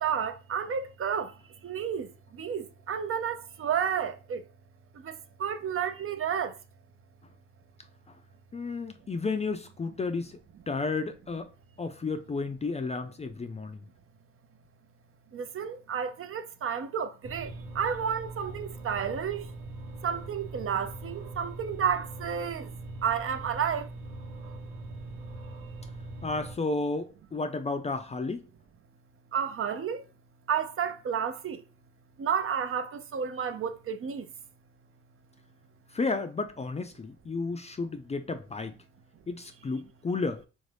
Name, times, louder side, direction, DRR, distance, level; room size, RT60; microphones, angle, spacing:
voice 1, 0.0-1.3 1.6-2.1 2.4-4.4 5.0-5.1 5.4-6.5 15.3-17.5 17.8-19.5 20.0-22.7 23.0-23.9 29.3-30.0 30.5-31.6 32.2-34.2, right 7 dB, 45° right, 0.6 m, -31 dB
voice 2, 8.5-10.4 10.7-11.5 11.8-13.8 26.2-28.5 35.9-38.7 39.3-40.4, left 3 dB, 20° left, 0.4 m, -32 dB
sound 1, 17.2-26.6, right 2 dB, 90° right, 1.1 m, -41 dB
3.4 x 2.6 x 3.3 m
supercardioid pair, 70°, 30 cm